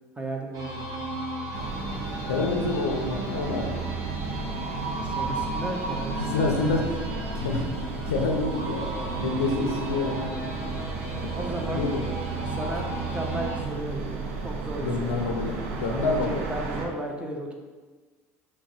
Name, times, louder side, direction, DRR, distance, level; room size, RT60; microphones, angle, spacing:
voice 1, 0.2-0.9 4.3-4.7 5.0-6.5 7.2-7.4 9.0-9.4 11.3-11.8 12.5-15.4 15.8-17.5, right 1 dB, 15° right, 1 dB, 0.7 m, -35 dB
sound 1, 0.5-13.6, right 2 dB, 55° right, 0.8 m, -34 dB
sound 2, 1.5-16.9, right 4 dB, 80° right, 0.5 m, -34 dB
voice 2, 2.3-3.8 6.2-6.9 7.3-8.9 9.2-10.3 11.7-12.0 14.8-16.4, left 3 dB, 85° left, 2 dB, 0.4 m, -27 dB
5.9 x 2.1 x 2.7 m, 1.3 s
hypercardioid pair, 70°, 7 cm